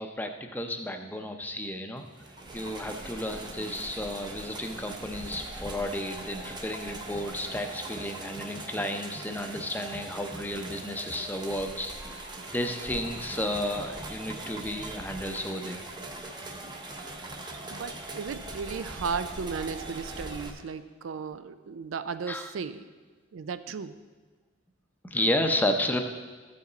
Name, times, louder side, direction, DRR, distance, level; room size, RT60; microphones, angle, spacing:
voice 1, 0.0-2.0 2.5-12.2 12.5-15.8 22.3-22.5 25.0-26.0, left 1 dB, 10° left, 5 dB, 0.6 m, -32 dB
sound 1, 2.1-20.5, right 2 dB, 25° right, 0.8 m, -41 dB
voice 2, 17.7-22.8 23.3-24.0, right 5 dB, 85° right, 12 dB, 0.4 m, -35 dB
13.5 x 5.4 x 3.9 m, 1.4 s
head